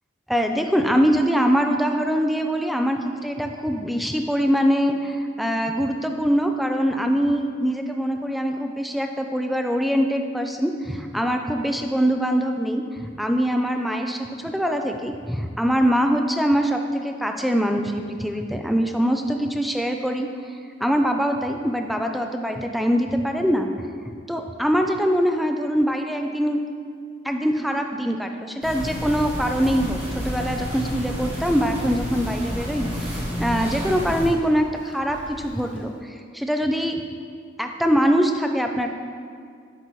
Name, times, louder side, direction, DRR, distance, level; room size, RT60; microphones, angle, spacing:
voice 1, 0.3-20.5 20.8-23.9 24.3-26.6 27.2-37.0 37.6-38.9, equal, ahead, 4 dB, 0.3 m, -23 dB
sound 1, 28.6-34.3, equal, 35° right, 1.4 m, -30 dB
Drum kit, 30.6-36.0, left 1 dB, 70° left, 0.7 m, -46 dB
9.8 x 4.0 x 3.1 m, 2.2 s
head